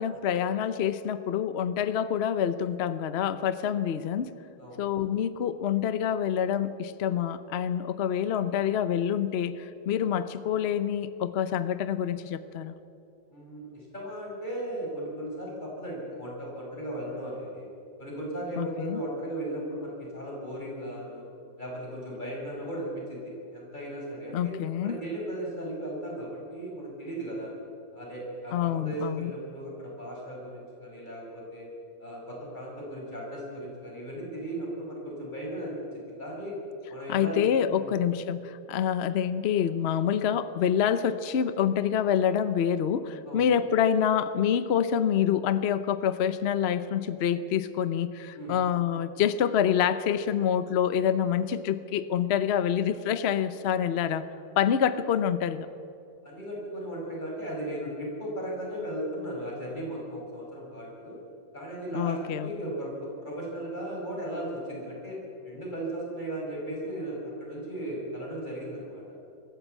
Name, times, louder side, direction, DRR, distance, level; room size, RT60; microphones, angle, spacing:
voice 1, 0.0-4.3 4.8-12.7 18.6-19.0 24.3-25.0 28.5-29.3 37.1-54.3 54.6-55.7 61.9-62.5, left 8 dB, 65° left, 13 dB, 0.6 m, -27 dB
voice 2, 13.3-17.7 18.0-21.3 21.6-24.5 24.8-27.5 27.9-31.7 32.0-36.5 36.9-37.4 37.7-38.0 43.3-43.5 48.3-48.6 56.2-61.2 61.5-65.2 65.4-69.0, right 1 dB, 25° left, -4 dB, 6.5 m, -36 dB
23.0 x 14.0 x 8.2 m, 2.6 s
omnidirectional pair, 2.0 m